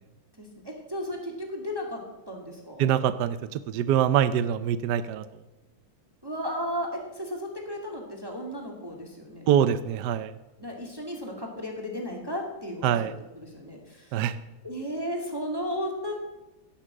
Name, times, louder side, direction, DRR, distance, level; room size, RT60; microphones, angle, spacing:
voice 1, 0.4-2.0 2.3-2.9 6.2-9.5 10.6-13.8 14.6-16.1, equal, 10° right, 0 dB, 2.2 m, -34 dB
voice 2, 2.8-5.2 9.5-10.3 12.8-13.1 14.1-14.4, right 9 dB, 70° right, 12 dB, 1.1 m, -24 dB
16.5 x 7.3 x 7.6 m, 1.0 s
omnidirectional pair, 2.1 m